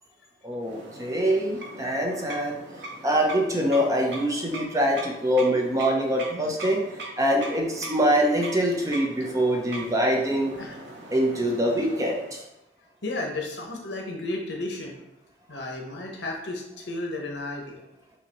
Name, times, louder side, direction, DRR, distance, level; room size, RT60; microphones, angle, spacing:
voice 1, 0.4-2.6 3.0-6.8 7.2-10.5 11.1-12.4, equal, 20° right, 0 dB, 0.6 m, -24 dB
sound 1, 0.6-12.4, right 2 dB, 80° right, 0.8 m, -41 dB
voice 2, 13.0-15.0 15.5-17.8, left 2 dB, 80° left, 1 dB, 0.9 m, -33 dB
5.6 x 2.8 x 3.0 m, 0.86 s
head